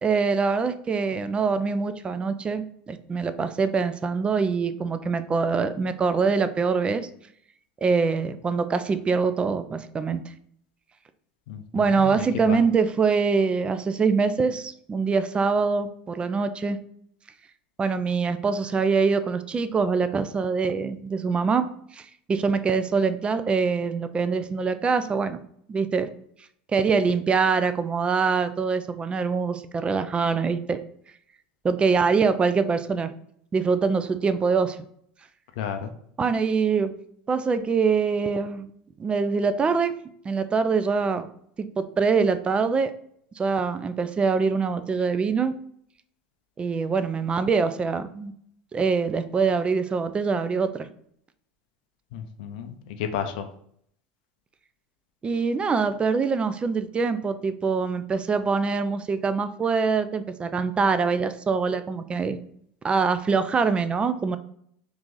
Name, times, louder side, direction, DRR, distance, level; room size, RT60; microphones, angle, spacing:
voice 1, 0.0-7.1 7.8-10.2 11.7-16.8 17.8-25.4 25.7-26.1 26.7-30.8 31.6-33.1 33.5-34.8 36.2-36.9 37.3-38.7 39.0-39.9 40.2-41.3 41.6-42.9 43.4-45.6 46.6-48.3 48.7-50.9 55.2-62.4 62.8-64.4, right 5 dB, 20° right, 12 dB, 0.3 m, -24 dB
voice 2, 11.5-12.6 35.6-35.9 52.1-53.5, left 8 dB, 75° left, 7 dB, 0.5 m, -32 dB
3.0 x 2.5 x 3.7 m, 0.66 s
hypercardioid pair, 95°, 5 cm